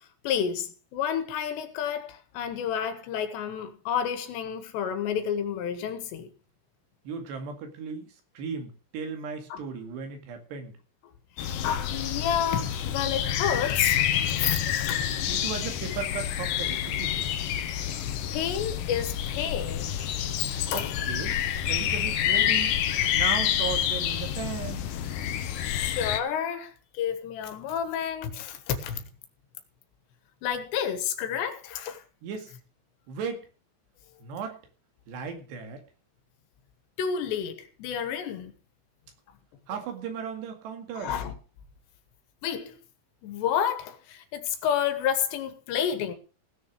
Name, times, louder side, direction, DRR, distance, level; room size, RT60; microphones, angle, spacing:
voice 1, 0.2-6.3 9.5-9.6 11.6-14.0 14.3-15.1 17.9-19.9 20.7-21.0 25.6-29.0 30.4-32.0 37.0-38.5 41.0-41.3 42.4-42.8 43.2-46.1, left 8 dB, 90° left, 3.6 m, -30 dB
voice 2, 7.1-10.7 15.3-17.3 20.7-22.8 23.1-24.9 32.2-32.5 33.1-33.5 34.2-34.6 35.1-35.8 39.7-41.2, right 6 dB, 80° right, 4.2 m, -36 dB
sound 1, 11.4-26.2, left 10 dB, 70° left, 2.3 m, -28 dB
17.0 x 6.6 x 6.4 m
omnidirectional pair, 4.9 m